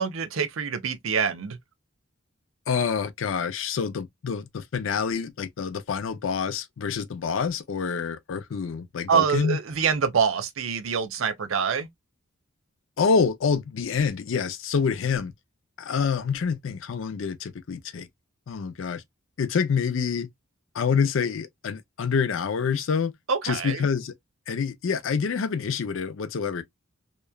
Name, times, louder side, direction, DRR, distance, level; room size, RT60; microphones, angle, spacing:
voice 1, 0.0-1.6 9.1-11.9 23.3-23.9, right 6 dB, 75° right, 0.5 m, -25 dB
voice 2, 2.7-9.6 13.0-15.3 15.8-18.1 18.5-19.0 19.4-20.3 20.7-23.1 23.4-24.1 24.5-26.6, left 6 dB, 65° left, 0.4 m, -27 dB
2.9 x 2.2 x 2.2 m
head